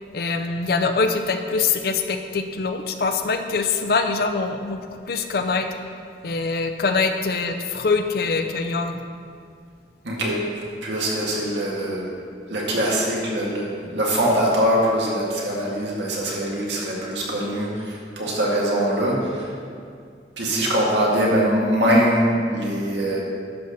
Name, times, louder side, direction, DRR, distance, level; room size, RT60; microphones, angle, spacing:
voice 1, 0.1-5.7 6.2-9.0, left 4 dB, 55° left, 7 dB, 0.5 m, -24 dB
voice 2, 10.0-12.1 12.5-19.5 20.4-23.3, equal, 75° right, -4 dB, 1.9 m, -22 dB
11.0 x 4.1 x 6.5 m, 2.2 s
head